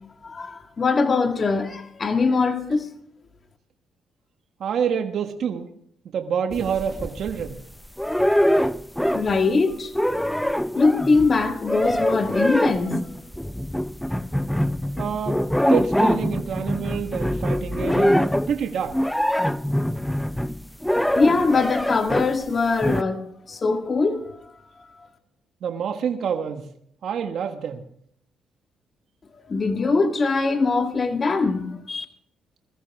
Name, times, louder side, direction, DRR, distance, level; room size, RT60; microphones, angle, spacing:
voice 1, 0.2-2.9 9.1-9.9 10.7-13.2 21.2-24.4 29.5-32.1, left 4 dB, 35° left, 1.8 m, -22 dB
voice 2, 4.6-5.7 6.1-7.6 15.0-15.4 15.7-18.2 18.5-19.1 25.6-26.7 27.0-27.8, right 7 dB, 65° right, 1.4 m, -27 dB
sound 1, 6.5-7.6 8.0-9.5 9.7-22.4 22.8-23.0, equal, 5° left, 0.6 m, -24 dB
21.5 x 14.0 x 3.6 m
cardioid pair, 90°, 0 cm